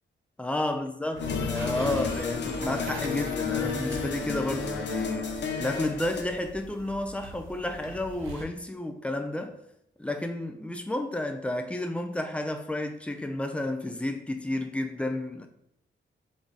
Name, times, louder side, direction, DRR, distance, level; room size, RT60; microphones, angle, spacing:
voice 1, 0.4-5.3 5.6-9.6 10.0-15.5, left 1 dB, 5° left, 0.3 m, -31 dB
sound 1, 1.1-8.4, right 2 dB, 75° right, 0.7 m, -42 dB
sound 2, 1.2-6.2, left 6 dB, 60° left, 0.6 m, -31 dB
3.7 x 3.4 x 4.0 m
wide cardioid pair, 160°, 21 cm